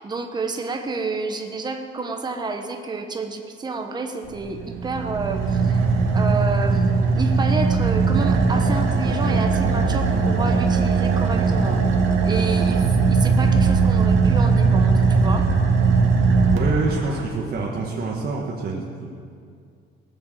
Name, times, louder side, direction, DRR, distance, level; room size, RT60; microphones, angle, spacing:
voice 1, 0.0-5.8 6.1-11.8 12.2-15.5, right 3 dB, 20° right, 4 dB, 1.1 m, -29 dB
Car / Idling, 4.3-17.2, right 4 dB, 90° right, 1.9 m, -19 dB
voice 2, 16.5-19.1, right 3 dB, 50° right, -2 dB, 1.5 m, -26 dB
18.5 x 7.8 x 7.6 m, 2.3 s
cardioid pair, 170°, 20 cm